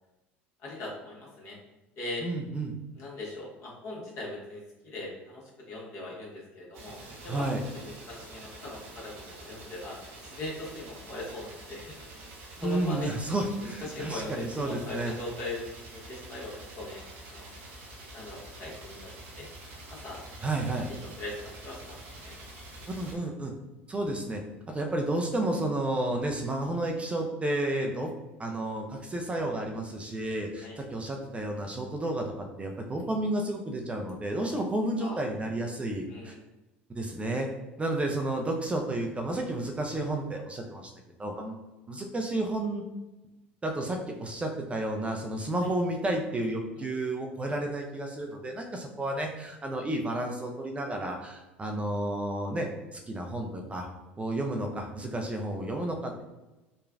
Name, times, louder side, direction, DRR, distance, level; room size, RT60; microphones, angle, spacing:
voice 1, 0.6-1.6 2.0-2.3 2.9-7.0 7.2-7.5 7.7-10.0 10.2-12.0 12.6-13.1 13.8-17.0 17.3-17.5 18.1-19.5 19.9-20.2 21.0-22.4 30.6-30.8 34.3-34.5 35.0-35.2 36.1-36.4 46.8-46.9, left 2 dB, 50° left, -4 dB, 1.2 m, -40 dB
voice 2, 2.2-2.7 7.3-7.6 12.6-15.1 20.4-20.9 23.0-23.5 23.9-24.4 24.7-28.1 28.4-32.3 32.6-36.3 36.9-37.5 37.8-40.9 41.2-42.8 43.6-53.9 54.2-56.2, right 1 dB, 20° right, 2 dB, 0.4 m, -31 dB
sound 1, 6.7-23.2, right 2 dB, 70° right, 0.9 m, -47 dB
3.0 x 2.2 x 2.4 m, 1.1 s
hypercardioid pair, 75°, 6 cm